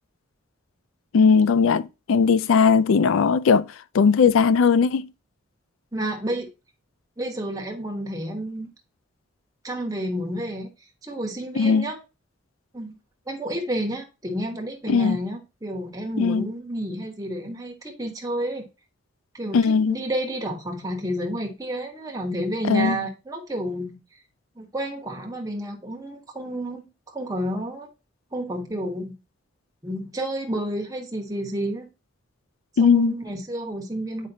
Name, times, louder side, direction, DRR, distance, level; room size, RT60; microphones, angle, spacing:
voice 1, 1.1-3.7 3.9-5.1 11.6-11.9 14.9-15.2 16.2-16.5 19.5-20.0 22.7-23.0 32.8-33.1, left 5 dB, 85° left, 0.4 m, -18 dB
voice 2, 5.9-6.5 7.2-8.7 9.6-10.7 11.0-12.0 12.7-12.9 13.3-18.6 19.3-24.0 24.6-27.9 28.3-29.1 29.8-31.9 32.8-34.3, right 1 dB, 15° right, 1.1 m, -30 dB
7.9 x 5.0 x 2.7 m
head